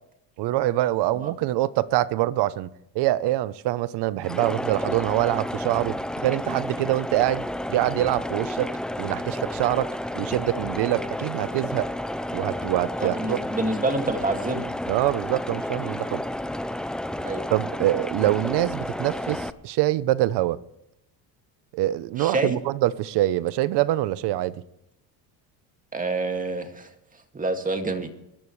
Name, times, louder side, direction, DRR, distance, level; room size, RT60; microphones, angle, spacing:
voice 1, 0.4-2.7 2.9-7.4 7.7-8.7 9.0-11.9 12.3-13.4 14.9-16.2 17.5-20.6 21.7-24.6, right 15 dB, 60° right, 0.9 m, -25 dB
sound 1, 4.2-19.5, left 1 dB, ahead, 0.5 m, -31 dB
voice 2, 13.0-14.7 17.2-17.4 22.2-22.6 25.9-26.9 27.3-28.1, right 2 dB, 15° right, 2.2 m, -27 dB
23.5 x 12.5 x 3.3 m
supercardioid pair, 110°, 46 cm